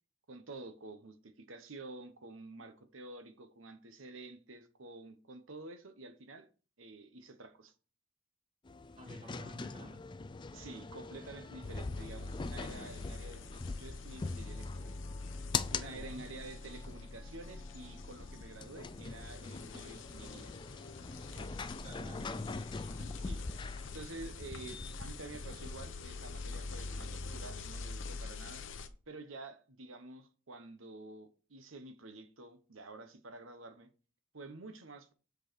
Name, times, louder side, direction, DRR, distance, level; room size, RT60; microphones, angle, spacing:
voice 1, 0.3-6.5 6.8-7.7 9.1-9.3 10.5-14.9 15.7-20.5 21.3-21.5 22.1-22.3 23.2-23.4 23.9-28.7 29.1-33.9 34.3-35.1, right 2 dB, 80° right, 1.1 m, -49 dB
sound 1, 8.6-25.9, left 4 dB, 25° left, 0.4 m, -43 dB
voice 2, 9.0-10.0 15.8-16.2 21.8-22.4 22.8-23.1, left 1 dB, 35° right, 2.8 m, -50 dB
sound 2, 11.6-28.9, left 3 dB, 65° left, 0.8 m, -45 dB
7.8 x 4.7 x 4.5 m
head